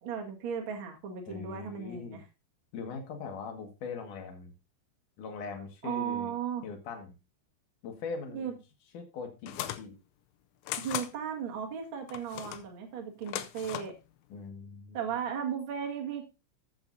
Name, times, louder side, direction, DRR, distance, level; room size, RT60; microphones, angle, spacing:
voice 1, 0.0-2.2 5.8-6.7 8.3-8.5 10.8-13.9 14.9-16.2, right 8 dB, 90° right, 2 dB, 1.1 m, -36 dB
voice 2, 1.3-2.2 2.7-4.5 5.2-6.3 6.6-7.1 7.8-8.6 8.9-9.9 14.3-15.1, left 5 dB, 55° left, 3 dB, 2.7 m, -41 dB
sound 1, 9.5-9.9 10.7-11.1 12.1-12.7 13.2-14.0, left 13 dB, 85° left, 3.1 m, -37 dB
14.0 x 7.8 x 2.7 m, 0.29 s
omnidirectional pair, 5.5 m